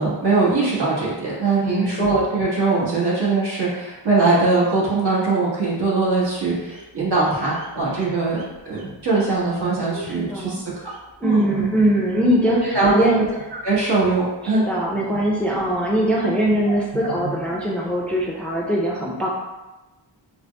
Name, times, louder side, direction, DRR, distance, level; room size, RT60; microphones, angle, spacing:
voice 1, 0.0-10.6 11.2-11.7 12.5-13.1 13.6-14.7, right 3 dB, 60° right, -7 dB, 1.4 m, -21 dB
voice 2, 1.6-2.0 10.1-10.6 11.2-13.2 14.4-19.3, right 1 dB, 5° left, -4 dB, 0.5 m, -22 dB
sound 1, 5.8-12.3 12.7-13.6 13.9-14.6 14.9-18.3 18.5-18.6, right 2 dB, 90° right, 0.7 m, -39 dB
4.0 x 2.1 x 3.4 m, 1.1 s
wide cardioid pair, 80°, 45 cm